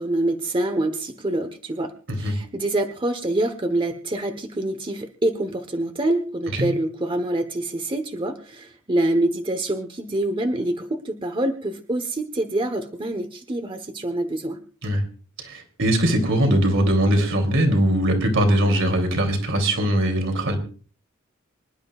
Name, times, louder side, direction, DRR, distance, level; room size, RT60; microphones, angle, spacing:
voice 1, 0.0-1.9 2.2-14.6, right 1 dB, 25° right, 7 dB, 1.1 m, -26 dB
voice 2, 15.4-20.6, right 1 dB, 65° right, 5 dB, 3.2 m, -21 dB
25.5 x 11.5 x 2.5 m, 0.38 s
head